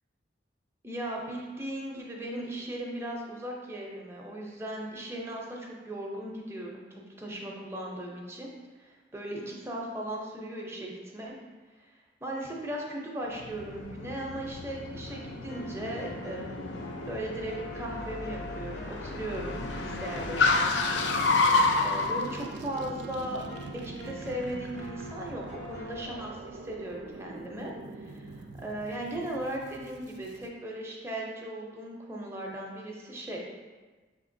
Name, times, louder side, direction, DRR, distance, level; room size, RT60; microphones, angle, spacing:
voice 1, 0.8-6.8 7.2-8.5 8.8-11.3 11.8-16.8 17.1-20.8 21.8-23.4 23.8-33.4, right 1 dB, 15° right, -2 dB, 0.6 m, -37 dB
Car, 13.3-22.3, left 3 dB, 85° left, 0.4 m, -30 dB
sound 1, 15.1-26.1, equal, 65° left, 1.0 m, -45 dB
sound 2, 18.8-30.5, right 2 dB, 90° right, 0.4 m, -44 dB
5.9 x 2.8 x 2.6 m, 1.3 s
head